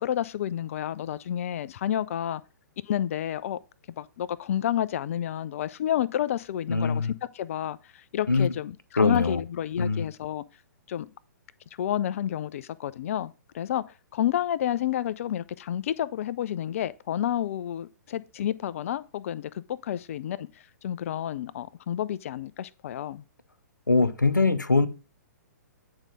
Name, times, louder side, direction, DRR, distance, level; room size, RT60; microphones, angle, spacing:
voice 1, 0.0-2.4 2.9-3.6 4.0-7.8 8.1-10.4 10.9-11.1 11.8-13.8 14.1-20.5 20.8-23.2, left 11 dB, 50° left, 0.5 m, -30 dB
voice 2, 6.7-7.1 8.3-8.5 9.0-9.4 9.8-10.1 23.9-24.9, left 3 dB, 90° left, 0.8 m, -22 dB
9.0 x 4.7 x 3.9 m
figure-of-eight pair, 115°, 10 cm